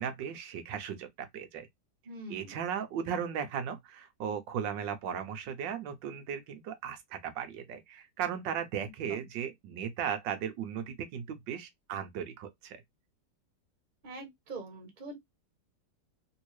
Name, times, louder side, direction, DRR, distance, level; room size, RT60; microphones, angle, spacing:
voice 1, 0.0-1.7 2.3-12.8, right 8 dB, 85° right, 1.4 m, -36 dB
voice 2, 2.0-2.5 8.8-9.3 14.0-15.1, right 2 dB, 30° right, 1.1 m, -44 dB
3.4 x 2.7 x 3.0 m
omnidirectional pair, 1.9 m